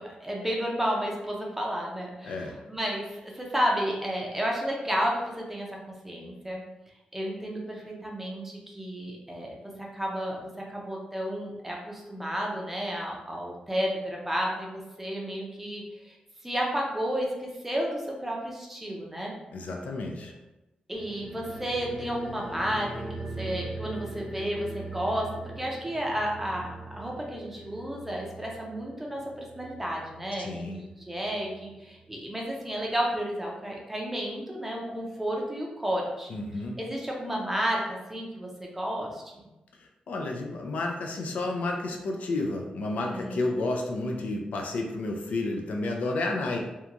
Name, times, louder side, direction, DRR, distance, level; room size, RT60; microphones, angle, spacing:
voice 1, 0.0-5.7 6.0-6.6 7.1-16.2 16.4-19.3 20.9-23.0 23.4-36.4 36.8-39.3 43.1-43.4, equal, 10° right, -2 dB, 0.5 m, -32 dB
voice 2, 19.5-20.3 30.4-30.8 36.3-36.8 40.1-46.6, left 2 dB, 70° left, 2 dB, 0.4 m, -31 dB
sound 1, 20.9-31.8 32.1-32.2, right 2 dB, 25° left, 0.9 m, -42 dB
2.9 x 2.2 x 2.4 m, 0.99 s
wide cardioid pair, 150°, 3 cm